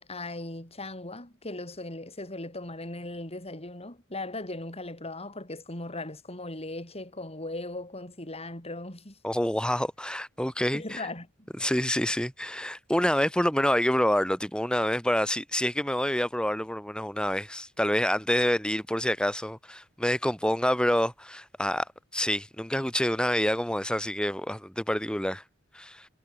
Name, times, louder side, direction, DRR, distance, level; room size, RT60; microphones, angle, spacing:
voice 1, 0.0-9.2 10.7-11.5, left 2 dB, 30° left, 7.0 m, -38 dB
voice 2, 9.2-11.1 11.6-25.4 25.7-26.1, equal, 5° left, 3.9 m, -27 dB
head